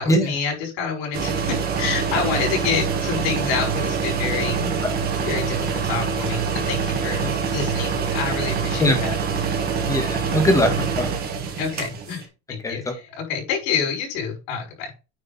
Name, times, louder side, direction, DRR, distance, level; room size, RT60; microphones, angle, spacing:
voice 1, 0.0-4.6 5.2-7.2 7.5-9.2 11.6-12.2 12.5-14.9, left 6 dB, 60° left, 2 dB, 5.7 m, -27 dB
sound 1, 1.1-12.2, right 6 dB, 25° right, 2.0 m, -25 dB
voice 2, 4.6-5.0 7.2-7.3 8.8-9.2 9.9-11.1 12.6-12.9, left 1 dB, 10° left, 5 dB, 1.6 m, -22 dB
9.4 x 5.2 x 4.2 m, 0.29 s
cardioid pair, 180°, 35 cm